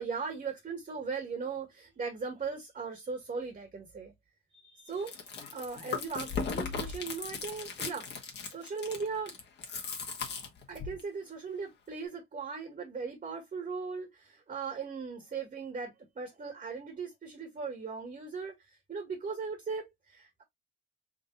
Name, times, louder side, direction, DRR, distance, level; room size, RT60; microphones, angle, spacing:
voice 1, 0.0-4.1 4.6-5.3 5.5-8.1 8.5-9.3 10.7-20.4, right 5 dB, 40° right, 1.8 m, -38 dB
Chewing mastication, 4.9-11.0, left 5 dB, 55° left, 1.4 m, -37 dB
3.8 x 2.6 x 3.9 m
cardioid pair, 130°, 21 cm